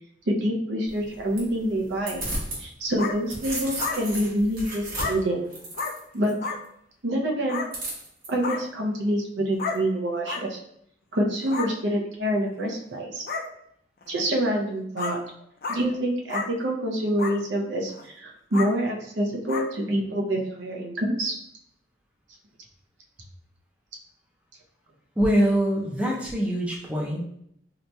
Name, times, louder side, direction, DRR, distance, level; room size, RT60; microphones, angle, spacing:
voice 1, 0.3-2.2 2.6-5.4 6.1-6.4 7.0-7.6 8.3-10.6 11.1-13.2 14.1-15.2 15.7-21.3, right 1 dB, 80° right, 0 dB, 0.7 m, -26 dB
sound 1, 0.9-2.6 3.0-6.3 7.7-8.3, right 1 dB, 50° right, 1.0 m, -34 dB
sound 2, 3.0-3.1 3.8-4.0 4.9-5.1 5.7-5.9 6.4-6.6 7.5-7.7 8.4-8.6 9.6-9.8 10.3-10.4 11.4-11.7 12.5-12.6 13.3-13.4 14.0-14.1 15.0-15.1 15.6-15.8 16.3-16.5 17.2-17.3 17.9-18.0 18.5-18.7 19.5-19.6, left 4 dB, 50° left, 0.4 m, -30 dB
voice 2, 25.2-27.2, equal, 5° right, -3 dB, 0.5 m, -23 dB
3.9 x 2.9 x 2.2 m, 0.71 s
head